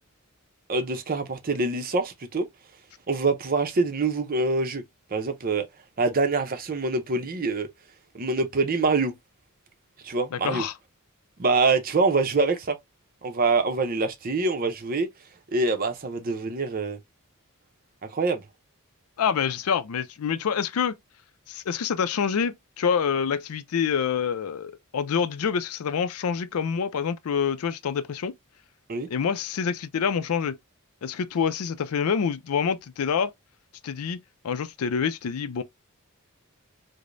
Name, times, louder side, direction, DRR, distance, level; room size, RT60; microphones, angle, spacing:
voice 1, 0.7-2.5 3.1-4.8 5.1-5.7 6.0-7.7 8.1-9.1 10.0-10.6 11.4-12.8 13.2-15.1 15.5-17.0 18.0-18.4 28.9-29.1, right 3 dB, 40° right, 0.6 m, -25 dB
voice 2, 10.3-10.7 19.2-21.0 21.5-28.3 29.1-30.6 31.0-33.3 33.8-35.6, left 6 dB, 75° left, 0.4 m, -27 dB
4.9 x 2.1 x 2.5 m
head